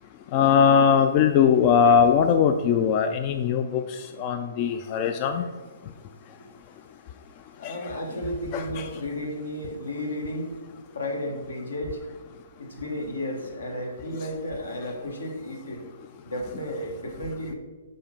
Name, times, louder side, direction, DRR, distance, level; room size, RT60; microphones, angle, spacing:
voice 1, 0.3-5.4 7.6-7.8 8.5-8.9, left 7 dB, 35° left, 7 dB, 0.3 m, -20 dB
voice 2, 7.6-10.6 10.9-12.0 12.6-15.8 16.2-17.5, left 1 dB, 80° left, 2 dB, 1.3 m, -33 dB
5.6 x 4.2 x 5.2 m, 1.3 s
figure-of-eight pair, 125°, 0 cm